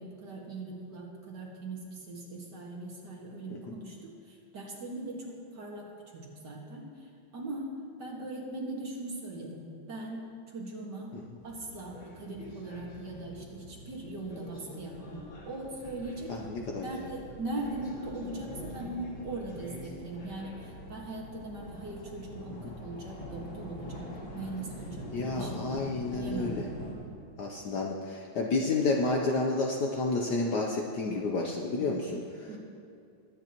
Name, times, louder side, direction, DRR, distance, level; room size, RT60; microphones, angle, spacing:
voice 1, 0.0-6.8 7.3-7.7 8.0-10.2 10.5-11.2 11.4-16.4 16.8-25.5 26.0-26.5 31.8-32.1 32.5-32.6, right 2 dB, 55° right, -2 dB, 2.3 m, -40 dB
sound 1, 11.4-26.9, left 1 dB, 80° left, 2.9 m, -44 dB
voice 2, 16.3-17.1 22.6-22.7 25.1-26.7 27.4-32.5, left 3 dB, 60° left, 0 dB, 1.2 m, -31 dB
22.0 x 9.5 x 3.0 m, 2.4 s
omnidirectional pair, 2.3 m